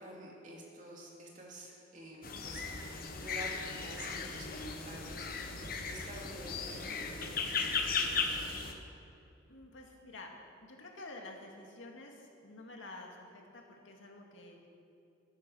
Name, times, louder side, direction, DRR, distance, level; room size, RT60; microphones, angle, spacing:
voice 1, 0.0-5.5 5.8-8.5, right 1 dB, 40° right, -2 dB, 2.7 m, -50 dB
sound 1, 2.2-8.7, left 5 dB, 50° left, 1.1 m, -37 dB
voice 2, 9.5-10.3 10.6-14.7, left 2 dB, 85° left, 1 dB, 2.1 m, -50 dB
14.0 x 9.6 x 6.8 m, 2.6 s
head